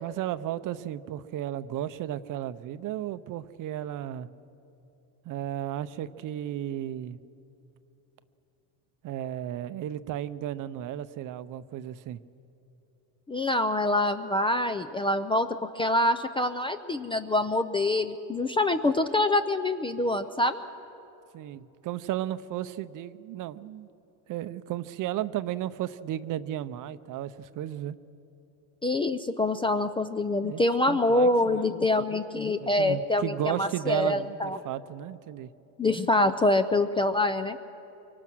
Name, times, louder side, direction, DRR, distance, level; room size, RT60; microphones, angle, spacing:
voice 1, 0.0-4.3 5.3-7.2 9.0-12.2 21.3-23.9 24.3-28.0 30.4-30.6 30.9-31.7 32.6-35.5, right 12 dB, 45° right, 14 dB, 0.7 m, -34 dB
voice 2, 13.3-20.6 28.8-34.6 35.8-37.6, left 2 dB, 10° left, 9 dB, 0.4 m, -25 dB
25.0 x 24.0 x 6.2 m, 2.9 s
cardioid pair, 130°, 44 cm